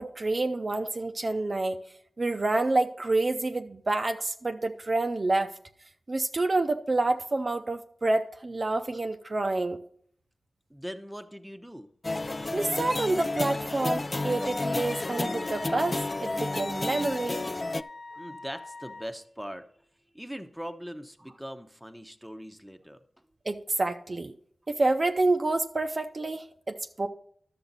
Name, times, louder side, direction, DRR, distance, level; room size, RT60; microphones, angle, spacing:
voice 1, 0.0-1.8 2.2-5.5 6.1-9.8 12.5-17.4 23.5-24.3 24.7-27.1, right 2 dB, 45° right, 0.6 m, -28 dB
voice 2, 10.7-11.9 18.2-19.7 20.1-23.0, equal, 5° right, 0.8 m, -41 dB
sound 1, 12.0-17.8, left 2 dB, 35° left, 0.3 m, -31 dB
Wind instrument woodwind instrument, 14.1-19.1, left 3 dB, 65° left, 0.7 m, -41 dB
11.5 x 6.9 x 4.1 m
wide cardioid pair, 65°, 0 cm